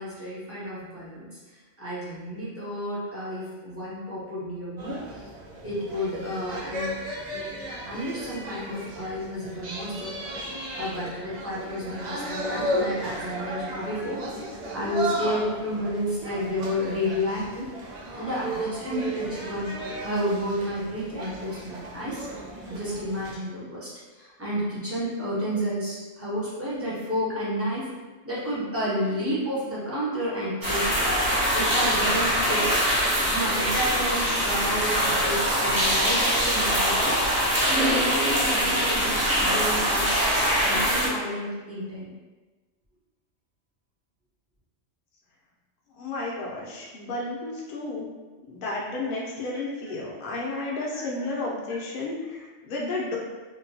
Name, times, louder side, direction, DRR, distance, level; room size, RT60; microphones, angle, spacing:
voice 1, 0.0-5.3 5.6-7.0 7.8-10.4 10.7-17.8 18.1-19.7 20.0-22.3 22.7-27.9 28.2-31.1 31.5-32.9 33.2-37.3 37.8-40.1 40.6-42.1 50.9-51.1, equal, 15° right, -9 dB, 0.5 m, -31 dB
sound 1, 4.8-23.3, right 1 dB, 75° right, 0.4 m, -35 dB
sound 2, 30.6-41.1, equal, 55° right, 1.0 m, -23 dB
voice 2, 46.0-48.1 48.4-53.2, left 2 dB, 55° left, -3 dB, 0.6 m, -32 dB
2.8 x 2.2 x 2.7 m, 1.3 s
omnidirectional pair, 1.3 m